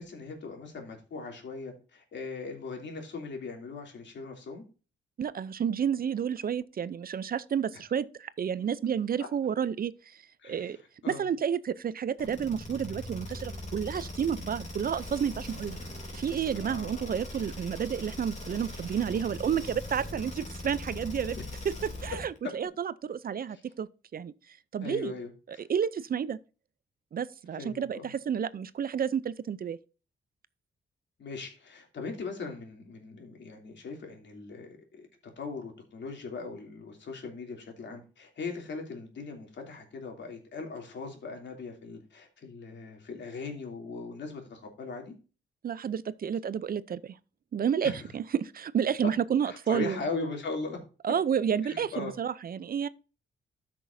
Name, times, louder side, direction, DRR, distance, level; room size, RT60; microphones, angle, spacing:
voice 1, 0.0-4.6 10.4-11.3 14.0-14.1 16.5-17.1 20.1-20.2 22.4-22.5 23.5-23.6 24.8-25.6 27.5-28.1 31.2-35.1 35.4-45.1 47.8-48.0 49.4-50.8 51.6-52.1, left 4 dB, 70° left, 3.0 m, -39 dB
voice 2, 5.2-10.2 10.4-10.8 11.1-15.8 16.1-21.4 22.0-24.3 24.7-25.1 25.5-26.4 27.1-29.8 45.6-47.2 47.5-50.0 51.0-52.9, right 8 dB, 50° right, 0.5 m, -30 dB
sound 1, 12.2-22.4, left 1 dB, 40° left, 3.0 m, -40 dB
13.5 x 6.1 x 2.7 m
cardioid pair, 90°, 19 cm